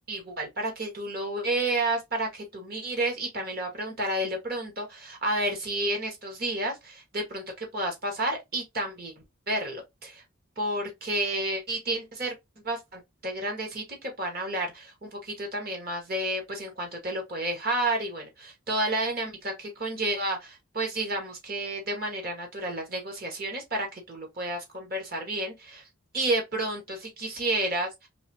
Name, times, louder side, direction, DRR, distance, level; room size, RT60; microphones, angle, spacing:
voice 1, 0.1-9.1 9.5-10.2 10.6-12.3 12.6-25.8 26.1-28.1, right 1 dB, 45° right, 1.8 m, -31 dB
4.0 x 3.5 x 2.9 m
head